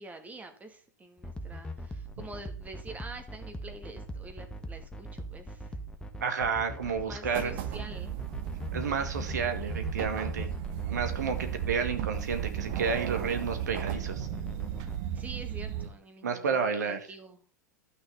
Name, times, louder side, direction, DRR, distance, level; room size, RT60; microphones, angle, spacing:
voice 1, 0.0-5.7 6.9-8.1 15.1-17.4, right 2 dB, 15° right, 6 dB, 2.2 m, -47 dB
sound 1, 1.2-15.0, left 1 dB, 10° left, 1.5 m, -41 dB
voice 2, 6.2-7.5 8.7-10.5 10.9-14.3 16.2-17.0, right 6 dB, 70° right, 7 dB, 2.0 m, -31 dB
sound 2, 7.3-15.9, right 11 dB, 50° right, 1.6 m, -35 dB
12.0 x 6.4 x 5.8 m, 0.38 s
figure-of-eight pair, 90°, 10 cm